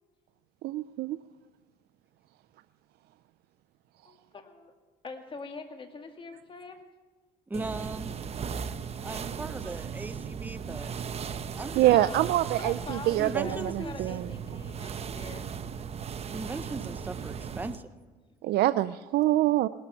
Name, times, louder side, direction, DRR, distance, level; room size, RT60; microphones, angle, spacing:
voice 1, 0.6-1.2 11.8-14.2 18.4-19.7, right 15 dB, 70° right, 13 dB, 0.4 m, -25 dB
voice 2, 4.0-4.7 5.0-6.8 11.9-15.5 18.2-18.4, left 4 dB, 30° left, 5 dB, 2.1 m, -43 dB
voice 3, 7.5-8.1 9.0-10.9 11.5-11.8 13.2-14.0 16.3-17.8, right 2 dB, 10° right, 11 dB, 0.7 m, -38 dB
sound 1, 7.5-17.8, right 7 dB, 40° right, 0.8 m, -37 dB
19.0 x 13.0 x 5.8 m, 1.3 s
cardioid pair, 110°, 17 cm